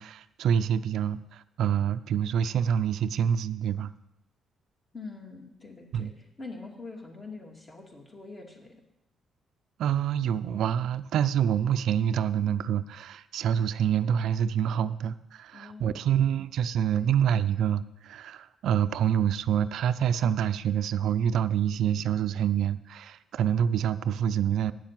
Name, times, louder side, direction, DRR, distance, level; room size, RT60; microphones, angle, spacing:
voice 1, 0.0-3.9 5.9-6.1 9.8-24.7, right 9 dB, 75° right, 13 dB, 0.4 m, -26 dB
voice 2, 4.9-8.8 15.5-16.3 16.9-17.1, left 3 dB, 30° left, 1 dB, 2.4 m, -44 dB
9.7 x 7.4 x 7.5 m, 0.88 s
cardioid pair, 90°, 0 cm